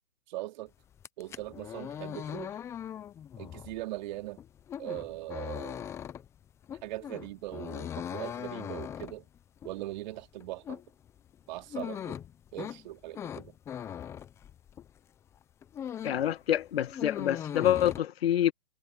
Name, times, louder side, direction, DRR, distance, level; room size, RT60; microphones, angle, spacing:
voice 1, 0.3-0.7 1.2-2.5 3.4-4.4 4.8-5.8 6.8-9.3 9.6-10.8 11.5-12.2 12.5-13.5, right 17 dB, 35° right, 3.5 m, -40 dB
sound 1, 0.9-15.0 15.3-16.3 16.6-18.0, left 9 dB, 5° left, 0.7 m, -40 dB
voice 2, 16.0-18.5, left 11 dB, 55° left, 1.6 m, -27 dB
hypercardioid pair, 140°, 38 cm